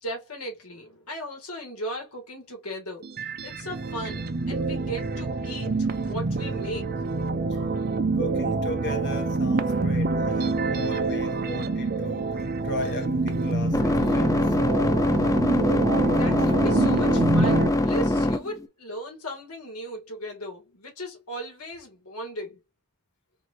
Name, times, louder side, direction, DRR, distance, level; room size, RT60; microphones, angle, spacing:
voice 1, 0.0-7.0 16.1-22.6, equal, 90° left, 2.0 m, -37 dB
sound 1, 3.0-17.7, right 3 dB, 45° right, 0.5 m, -26 dB
voice 2, 8.2-14.4, left 1 dB, 55° left, 1.1 m, -36 dB
sound 2, 12.6-18.7, left 1 dB, 15° left, 0.5 m, -24 dB
4.5 x 2.7 x 2.7 m
head